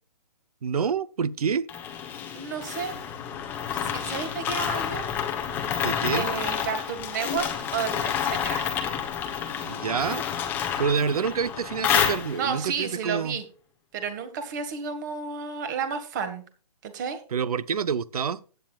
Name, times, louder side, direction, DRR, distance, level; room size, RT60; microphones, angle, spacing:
voice 1, 0.6-1.7 5.8-6.3 9.6-10.2 10.8-13.4 17.3-18.4, right 6 dB, 60° right, 0.8 m, -27 dB
sound 1, 1.7-12.7, left 8 dB, 10° left, 0.9 m, -29 dB
voice 2, 2.3-3.0 3.7-5.1 6.1-8.8 12.3-13.4 13.9-16.4 16.8-17.2, right 6 dB, 25° right, 1.7 m, -32 dB
15.0 x 9.3 x 2.4 m
hypercardioid pair, 165°, 21 cm